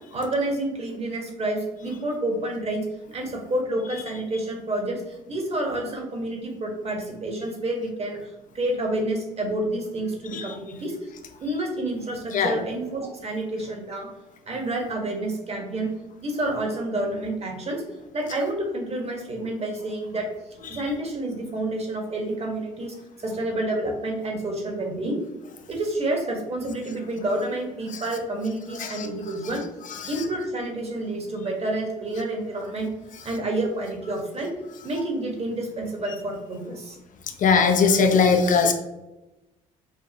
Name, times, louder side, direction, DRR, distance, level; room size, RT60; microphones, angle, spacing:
voice 1, 0.1-2.8 3.1-10.9 11.4-14.1 14.5-15.9 16.2-17.8 18.1-20.2 20.5-25.2 25.7-29.6 30.1-32.9 33.2-34.5 34.8-37.0, right 1 dB, 40° right, 1 dB, 1.5 m, -29 dB
voice 2, 37.4-38.7, left 5 dB, 50° left, 5 dB, 0.7 m, -18 dB
5.6 x 2.4 x 2.9 m, 1.0 s
hypercardioid pair, 60°, 17 cm